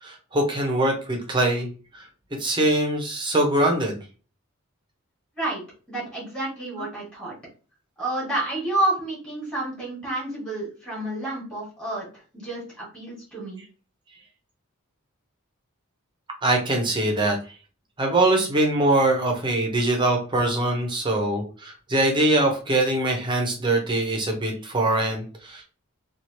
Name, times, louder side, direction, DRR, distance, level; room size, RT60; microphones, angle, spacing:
voice 1, 0.0-1.7 1.9-2.1 2.4-4.0 6.8-6.9 16.4-17.4 18.0-25.6, right 1 dB, 20° right, 2 dB, 0.7 m, -23 dB
voice 2, 5.9-7.3 8.0-13.6, right 2 dB, 5° left, -7 dB, 1.5 m, -29 dB
2.9 x 2.4 x 2.9 m, 0.36 s
head